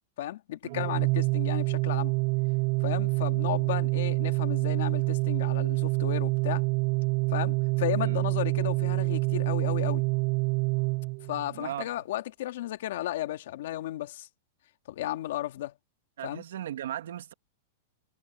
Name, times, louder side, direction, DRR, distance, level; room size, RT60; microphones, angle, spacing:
voice 1, 0.2-2.1 2.8-6.6 7.3-10.0 11.3-14.3 14.9-15.7 16.2-16.4, left 14 dB, 65° left, 2.3 m, -34 dB
Organ, 0.7-11.6, right 27 dB, 40° right, 0.3 m, -27 dB
voice 2, 11.5-11.9 16.2-17.3, right 11 dB, 80° right, 2.1 m, -37 dB
supercardioid pair, 160°, 0 cm